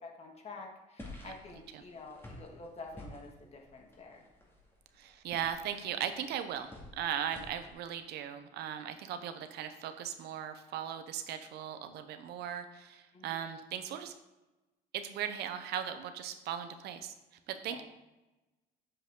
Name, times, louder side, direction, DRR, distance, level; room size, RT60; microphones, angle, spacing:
voice 1, 0.0-4.3 13.1-13.5 17.7-17.8, left 3 dB, 40° left, 1 dB, 1.9 m, -49 dB
sound 1, 1.0-7.7, left 1 dB, 15° left, 2.2 m, -52 dB
voice 2, 5.0-14.1 14.9-17.1 17.5-17.8, right 9 dB, 75° right, 9 dB, 0.8 m, -38 dB
7.9 x 7.6 x 3.7 m, 1.1 s
cardioid pair, 110°, 17 cm